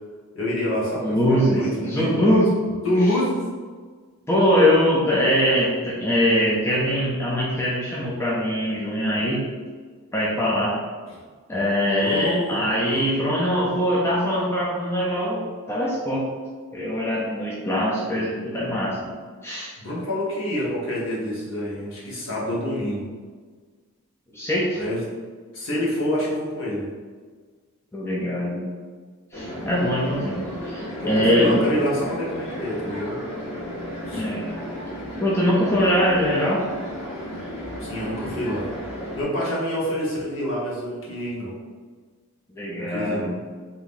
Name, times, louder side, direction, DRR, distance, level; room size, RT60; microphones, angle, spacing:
voice 1, 0.3-2.3 2.8-3.4 11.1-11.2 12.0-13.1 19.0-19.1 19.8-23.1 24.7-25.0 25.5-26.9 31.0-33.2 34.1-34.3 37.8-38.7 39.1-41.5 42.7-43.4, equal, 60° left, -6 dB, 1.0 m, -27 dB
voice 2, 1.0-2.5 4.3-9.4 10.1-10.8 11.5-16.3 16.7-19.1 19.4-19.7 24.3-24.8 27.9-28.6 29.3-31.6 34.1-34.5 35.2-36.6 42.6-43.3, equal, 10° left, -6 dB, 0.4 m, -22 dB
sound 1, 29.3-39.2, left 1 dB, 25° left, 1.1 m, -34 dB
3.6 x 2.8 x 2.5 m, 1.5 s
head